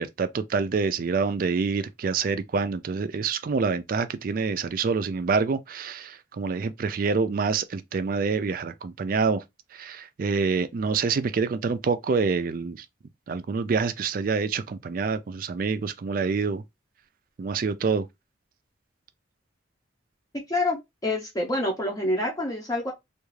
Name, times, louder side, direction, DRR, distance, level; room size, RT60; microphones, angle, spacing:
voice 1, 0.0-9.4 9.7-12.9 13.3-16.6 17.4-18.1, right 5 dB, 50° right, 0.3 m, -26 dB
voice 2, 21.0-22.9, left 1 dB, 20° left, 0.6 m, -26 dB
2.4 x 2.3 x 3.1 m
head